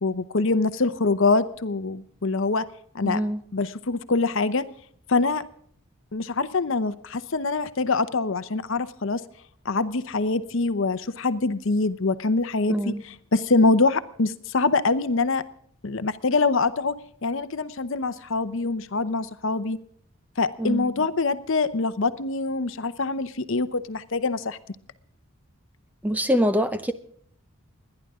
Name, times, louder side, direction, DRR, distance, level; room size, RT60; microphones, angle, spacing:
voice 1, 0.0-2.7 2.9-3.2 3.5-4.6 5.1-5.4 6.1-9.2 9.6-15.4 15.8-16.9 17.2-19.8 20.4-24.6, left 3 dB, 60° left, 12 dB, 0.8 m, -24 dB
voice 2, 3.0-3.4 12.7-13.0 20.6-20.9 26.0-26.9, equal, 5° right, 10 dB, 0.6 m, -24 dB
29.5 x 11.0 x 3.7 m, 0.62 s
head